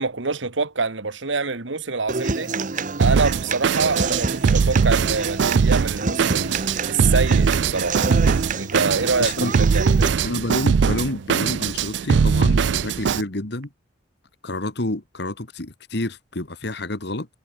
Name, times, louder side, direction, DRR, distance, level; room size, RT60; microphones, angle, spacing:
voice 1, 0.0-2.5 3.0-8.0 8.6-10.2, right 4 dB, 85° right, 1.7 m, -25 dB
Human voice / Acoustic guitar, 2.1-10.1, right 4 dB, 45° right, 0.9 m, -28 dB
Drum kit, 3.0-13.2, right 5 dB, 65° right, 0.4 m, -21 dB
voice 2, 9.2-9.5 10.2-13.7 14.4-17.3, left 1 dB, 65° left, 1.9 m, -28 dB
head